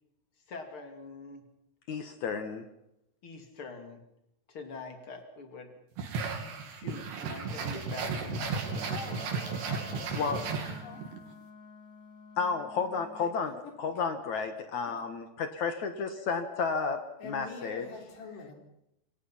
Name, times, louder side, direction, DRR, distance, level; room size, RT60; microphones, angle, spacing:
voice 1, 0.5-1.4 3.2-4.0 4.5-5.7 6.7-9.9 13.2-13.3, left 3 dB, 35° left, 5 dB, 3.2 m, -45 dB
voice 2, 1.9-2.6 8.4-8.5 10.2-10.4 12.4-17.0 17.2-17.9, left 5 dB, 55° left, 7 dB, 2.5 m, -32 dB
sound 1, 6.0-11.2, right 5 dB, 75° right, 4.9 m, -34 dB
Wind instrument woodwind instrument, 8.5-13.2, left 4 dB, ahead, 5.8 m, -50 dB
voice 3, 8.9-11.1 13.6-13.7 14.9-15.0 17.2-18.5, left 4 dB, 90° left, 3 dB, 6.3 m, -45 dB
27.5 x 24.5 x 5.8 m, 0.81 s
omnidirectional pair, 4.7 m